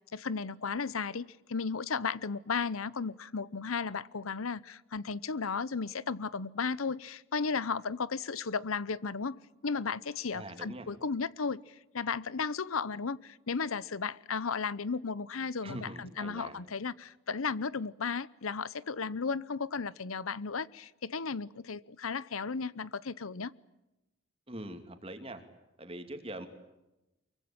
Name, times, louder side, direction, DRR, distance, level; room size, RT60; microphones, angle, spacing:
voice 1, 0.1-23.5, left 5 dB, 90° left, 20 dB, 0.8 m, -35 dB
voice 2, 10.3-10.9 15.6-16.6 24.5-25.4 25.8-26.5, right 1 dB, 25° right, 7 dB, 2.7 m, -43 dB
24.5 x 23.5 x 8.7 m, 0.96 s
head